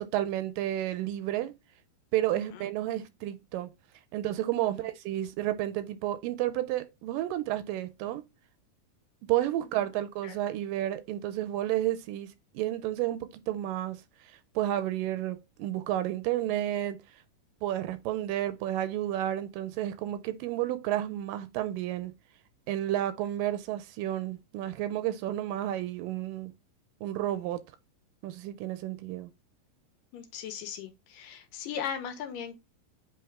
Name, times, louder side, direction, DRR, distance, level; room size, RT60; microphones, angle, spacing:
voice 1, 0.0-1.5 2.1-3.7 4.1-8.2 9.3-12.3 12.5-14.0 14.6-17.0 17.6-22.1 22.7-26.5 27.0-27.6 28.2-29.3, right 13 dB, 80° right, 2.1 m, -31 dB
voice 2, 2.3-2.6 4.6-4.9 9.6-9.9 10.2-10.4 30.1-32.6, left 8 dB, 80° left, 2.4 m, -39 dB
7.8 x 3.4 x 3.6 m
omnidirectional pair, 4.0 m